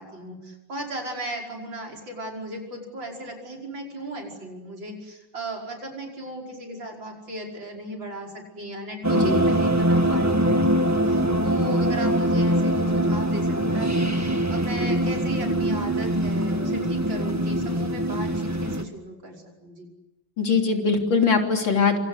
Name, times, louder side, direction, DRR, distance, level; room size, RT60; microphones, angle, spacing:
voice 1, 0.0-19.9, right 1 dB, 80° right, 0 dB, 6.2 m, -36 dB
sound 1, 9.0-18.8, right 1 dB, 10° right, 1.3 m, -23 dB
voice 2, 9.1-9.4 20.4-22.0, left 5 dB, 85° left, 3 dB, 4.0 m, -21 dB
26.5 x 26.0 x 8.1 m, 0.98 s
omnidirectional pair, 2.0 m